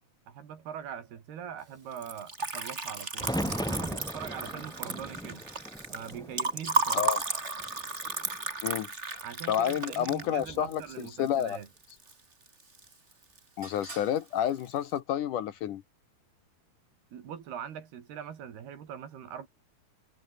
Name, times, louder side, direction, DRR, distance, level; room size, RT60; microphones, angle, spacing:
voice 1, 0.3-5.4 5.9-7.1 9.2-11.7 17.1-19.5, right 8 dB, 80° right, 4.9 m, -42 dB
Liquid, 1.9-12.1 12.5-13.1 13.4-14.2, right 3 dB, 20° right, 2.6 m, -34 dB
sound 1, 3.2-7.2 7.6-8.4 10.2-10.7, equal, ahead, 1.4 m, -38 dB
voice 2, 8.6-9.2 9.5-10.8 11.2-11.6 13.6-15.8, left 10 dB, 65° left, 2.4 m, -30 dB
omnidirectional pair, 4.5 m